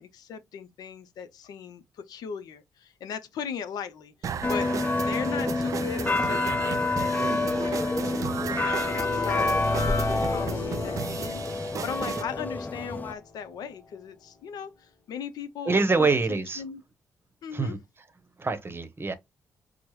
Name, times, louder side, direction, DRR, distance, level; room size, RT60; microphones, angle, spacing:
voice 1, 0.0-8.1 8.5-16.8 17.4-17.8, left 7 dB, 75° left, 0.5 m, -38 dB
sound 1, 4.2-12.2, right 7 dB, 55° right, 0.3 m, -35 dB
sound 2, 4.4-13.1, left 3 dB, 25° left, 0.5 m, -28 dB
sound 3, 6.6-13.5, left 2 dB, 50° left, 0.9 m, -34 dB
voice 2, 15.7-16.6 17.5-17.8 18.4-19.1, right 3 dB, 35° right, 0.8 m, -25 dB
4.5 x 2.0 x 3.0 m
supercardioid pair, 50°, 7 cm